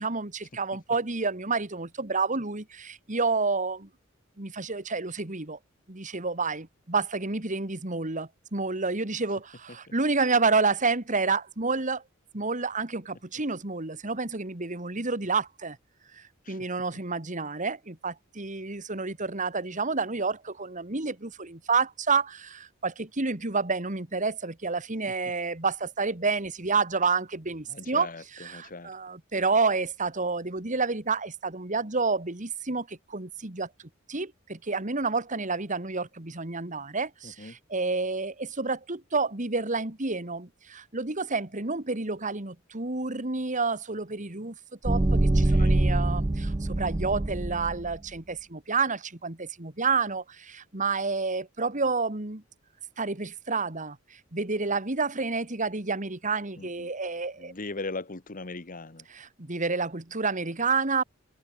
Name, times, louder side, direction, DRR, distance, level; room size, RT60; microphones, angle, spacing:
voice 1, 0.0-3.9 4.4-5.6 5.9-12.0 12.3-15.8 16.1-28.1 28.4-33.7 34.1-44.5 44.8-52.4 53.0-57.5 59.1-61.0, right 4 dB, 40° right, 2.3 m, -29 dB
voice 2, 27.7-28.9 37.2-37.6 45.3-45.8 56.6-56.9 57.4-59.1, left 3 dB, 45° left, 1.5 m, -39 dB
sound 1, 44.8-48.0, right 2 dB, 20° right, 0.5 m, -24 dB
head